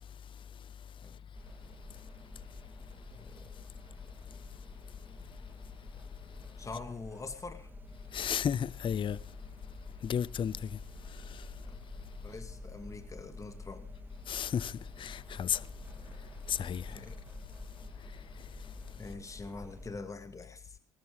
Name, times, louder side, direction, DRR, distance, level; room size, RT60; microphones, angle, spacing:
sound 1, 1.3-19.9, left 2 dB, 15° right, 3.5 m, -49 dB
voice 1, 3.1-3.6 6.6-7.7 11.6-11.7 12.2-13.9 16.9-17.2 19.0-20.8, left 3 dB, 25° left, 2.3 m, -44 dB
voice 2, 8.1-9.2 10.0-10.6 14.3-14.7 15.0-15.6 16.5-16.9, left 8 dB, 40° left, 0.6 m, -32 dB
20.0 x 13.5 x 3.7 m
supercardioid pair, 80°, 13 cm